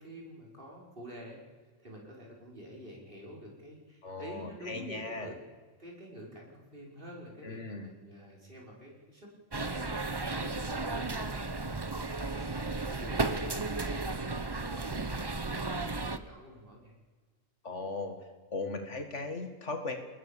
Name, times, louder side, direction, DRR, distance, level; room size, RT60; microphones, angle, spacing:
voice 1, 0.0-1.4 1.8-5.4 5.8-9.3 9.6-17.0, equal, 45° right, -2 dB, 5.9 m, -48 dB
voice 2, 4.0-5.3 7.4-7.9 11.6-11.8 17.6-18.2 18.5-20.0, left 3 dB, 65° left, 6 dB, 2.4 m, -38 dB
sound 1, 9.5-16.2, right 3 dB, 20° right, 0.9 m, -34 dB
29.0 x 20.5 x 7.0 m, 1.5 s
omnidirectional pair, 1.3 m